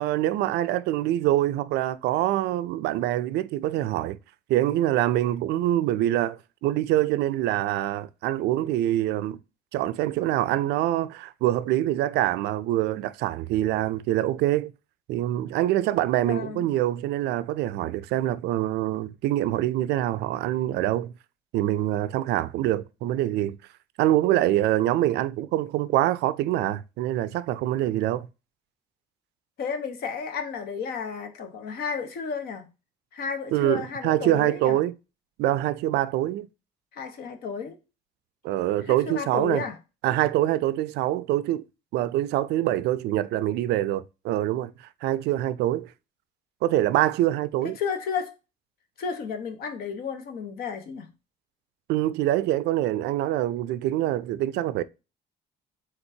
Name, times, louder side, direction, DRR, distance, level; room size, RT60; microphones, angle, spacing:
voice 1, 0.0-4.2 4.5-9.4 9.7-14.7 15.1-21.1 21.5-23.6 24.0-28.3 33.5-34.9 35.4-36.5 38.4-39.6 40.0-41.6 41.9-44.7 45.0-45.9 46.6-47.8 51.9-54.8, right 14 dB, 80° right, 0.4 m, -25 dB
voice 2, 16.2-16.7 29.6-32.7 33.1-34.8 36.9-37.7 38.9-39.8 47.6-48.3 49.0-51.1, left 6 dB, 65° left, 1.0 m, -32 dB
4.3 x 3.8 x 2.7 m
cardioid pair, 110°, 17 cm